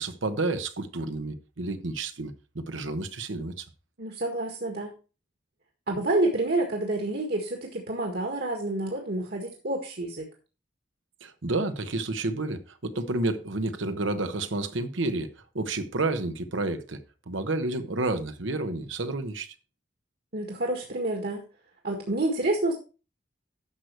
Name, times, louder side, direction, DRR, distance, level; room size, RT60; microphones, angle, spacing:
voice 1, 0.0-3.6 11.2-15.3 15.5-17.0 17.3-19.5, right 2 dB, 90° right, 1.1 m, -30 dB
voice 2, 4.0-5.0 5.9-10.3 20.3-21.5 21.8-22.7, right 2 dB, 55° right, 1.8 m, -28 dB
11.0 x 6.6 x 4.6 m
head